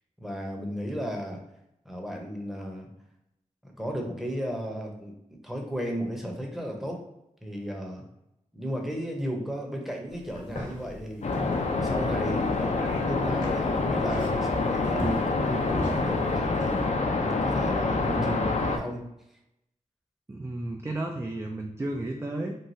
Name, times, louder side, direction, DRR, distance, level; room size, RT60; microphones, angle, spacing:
voice 1, 0.2-1.4 1.8-2.9 3.6-7.0 7.4-8.0 8.5-11.3 11.8-16.9 17.2-19.1, equal, ahead, 1 dB, 0.8 m, -34 dB
sound 1, 10.1-16.8, left 1 dB, 70° left, 1.0 m, -38 dB
sound 2, 11.2-18.8, left 3 dB, 55° left, 0.4 m, -27 dB
voice 2, 12.6-13.0 20.3-22.6, right 2 dB, 20° right, 2 dB, 0.3 m, -33 dB
3.0 x 2.3 x 2.7 m, 0.85 s
cardioid pair, 50°, 14 cm